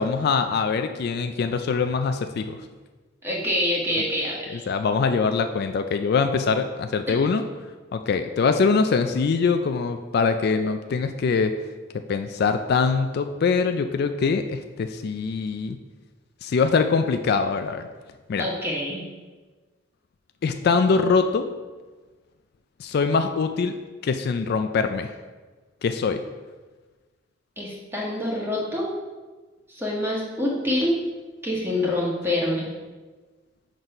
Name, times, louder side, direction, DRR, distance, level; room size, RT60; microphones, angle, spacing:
voice 1, 0.0-2.6 4.0-4.1 4.5-7.5 7.9-11.5 12.1-15.8 16.4-17.9 18.3-18.4 20.4-21.5 22.8-25.1 25.8-26.2, left 5 dB, 55° left, 8 dB, 0.3 m, -23 dB
voice 2, 3.2-4.7 18.4-19.0 27.6-28.9 29.7-31.0 31.4-32.7, left 1 dB, 10° right, -4 dB, 1.4 m, -26 dB
6.2 x 3.9 x 5.3 m, 1.3 s
head